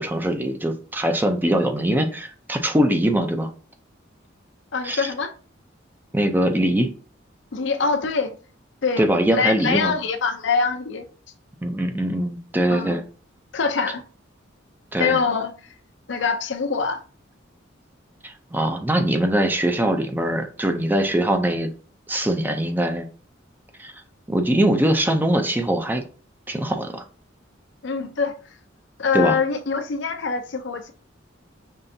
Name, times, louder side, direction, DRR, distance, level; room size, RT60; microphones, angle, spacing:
voice 1, 0.0-3.5 4.8-5.1 6.1-6.9 9.0-9.9 11.6-13.0 14.9-15.2 18.2-21.7 22.1-23.1 23.8-23.9 24.3-26.0 26.5-27.0 29.1-29.4, right 1 dB, 10° right, 0.5 m, -22 dB
voice 2, 4.7-5.3 7.5-8.3 8.8-9.1 9.3-11.1 12.7-13.0 13.5-14.0 15.0-15.7 16.1-17.0 27.8-28.4 29.0-30.9, left 5 dB, 65° left, 0.6 m, -24 dB
5.5 x 3.3 x 2.7 m
head